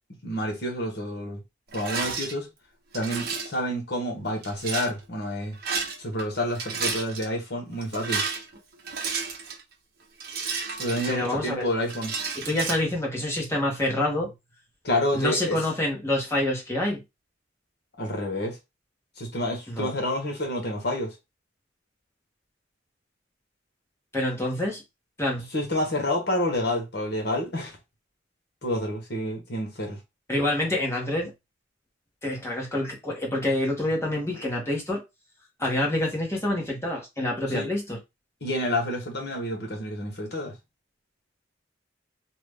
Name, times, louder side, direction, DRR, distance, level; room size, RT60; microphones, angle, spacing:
voice 1, 0.2-1.4 1.7-2.5 2.9-5.6 6.0-8.2 10.8-12.1 14.8-15.6 18.0-18.6 19.2-21.2 25.5-27.8 28.6-30.0 37.5-37.7 38.4-40.6, left 1 dB, 60° left, 1.2 m, -29 dB
Rattle, 1.7-2.3 2.9-3.6 4.4-4.9 5.5-6.2 6.5-7.3 7.8-9.6 10.2-11.5 11.9-12.8, right 5 dB, 55° right, 0.8 m, -31 dB
voice 2, 11.1-11.6 12.4-14.3 15.1-17.0 19.7-20.0 24.1-24.8 25.2-25.5 30.3-31.3 32.2-35.0 35.6-38.0, left 1 dB, 15° left, 1.2 m, -27 dB
2.9 x 2.4 x 3.5 m
head